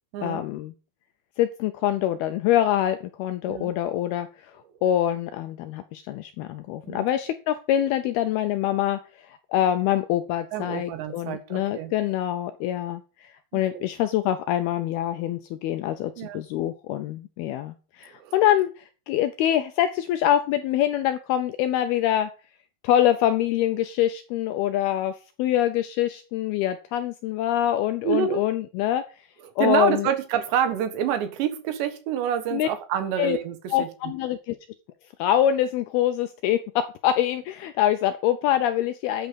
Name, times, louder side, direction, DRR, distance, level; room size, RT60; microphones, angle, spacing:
voice 1, 0.2-0.7 1.4-22.3 22.8-29.0 29.6-30.1 32.5-32.7 33.2-33.4 33.7-34.6 35.2-39.3, left 11 dB, 80° left, 2.3 m, -25 dB
voice 2, 10.5-11.9 13.5-13.8 16.2-16.4 18.2-18.3 28.0-28.4 29.6-33.9, right 9 dB, 75° right, 3.6 m, -27 dB
13.0 x 9.3 x 5.3 m
omnidirectional pair, 5.2 m